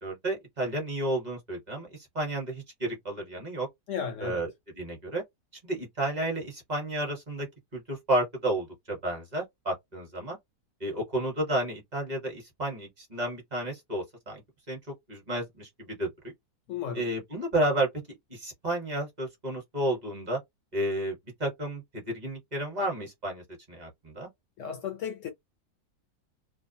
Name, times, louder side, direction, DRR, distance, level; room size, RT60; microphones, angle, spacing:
voice 1, 0.0-1.9 2.1-3.7 4.2-4.5 4.8-5.2 5.6-7.5 7.7-10.4 10.8-14.4 14.7-14.8 15.1-16.3 16.9-17.9 18.3-20.4 20.7-23.4 23.7-24.3, right 1 dB, 30° right, 1.0 m, -31 dB
voice 2, 3.9-4.5 16.7-17.1 24.6-25.3, left 8 dB, 65° left, 0.8 m, -34 dB
2.6 x 2.2 x 2.6 m
omnidirectional pair, 1.7 m